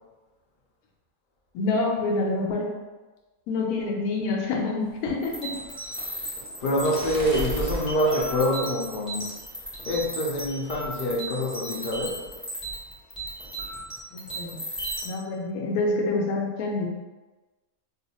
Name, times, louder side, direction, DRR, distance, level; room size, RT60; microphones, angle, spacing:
voice 1, 1.5-2.7 3.5-5.5 14.1-14.6 15.0-16.9, left 3 dB, 85° left, 1 dB, 1.1 m, -27 dB
sound 1, 4.8-9.2 9.7-10.1 10.4-10.7 11.0-11.6, right 1 dB, 55° right, 0.7 m, -37 dB
sound 2, 5.2-15.1, right 1 dB, ahead, 0.6 m, -36 dB
voice 2, 6.6-9.4 9.8-12.2, equal, 55° left, -2 dB, 0.6 m, -26 dB
2.6 x 2.4 x 4.0 m, 1.2 s
omnidirectional pair, 1.5 m